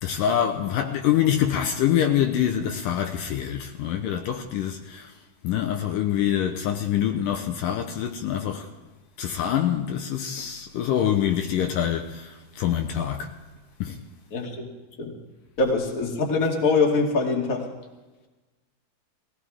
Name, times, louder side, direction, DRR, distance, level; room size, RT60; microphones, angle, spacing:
voice 1, 0.0-5.1 5.4-8.7 9.2-13.3 13.8-14.0, left 10 dB, 75° left, 2.4 m, -25 dB
voice 2, 14.3-14.7 15.0-15.1 15.6-17.7, left 3 dB, 30° left, 2.2 m, -23 dB
22.0 x 16.5 x 3.6 m
omnidirectional pair, 4.1 m